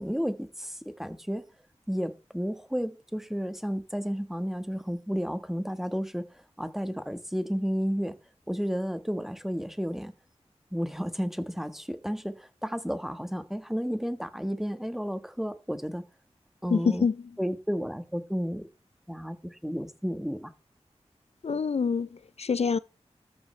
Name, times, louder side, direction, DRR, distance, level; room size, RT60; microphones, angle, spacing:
voice 1, 0.0-1.4 1.9-8.2 8.5-10.1 10.7-16.0 16.6-17.1 17.4-18.7 19.1-20.5, equal, 5° right, 1.4 m, -32 dB
voice 2, 16.7-17.2 21.4-22.8, left 5 dB, 65° left, 0.5 m, -26 dB
14.0 x 13.5 x 3.3 m
wide cardioid pair, 85°, 11 cm